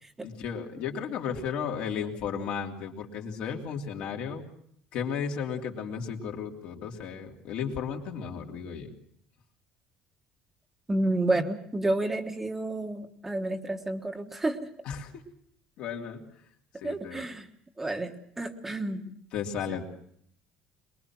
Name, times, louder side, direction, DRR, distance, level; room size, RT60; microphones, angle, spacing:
voice 1, 0.2-4.4 4.9-8.9 14.8-15.2 15.8-16.2 16.8-17.2 19.3-19.8, left 7 dB, 65° left, 0 dB, 3.2 m, -34 dB
voice 2, 10.9-14.7 16.8-17.5 17.8-19.2 19.7-19.8, right 2 dB, 10° right, 5 dB, 1.4 m, -30 dB
23.5 x 21.5 x 6.1 m, 0.67 s
cardioid pair, 140°, 2 cm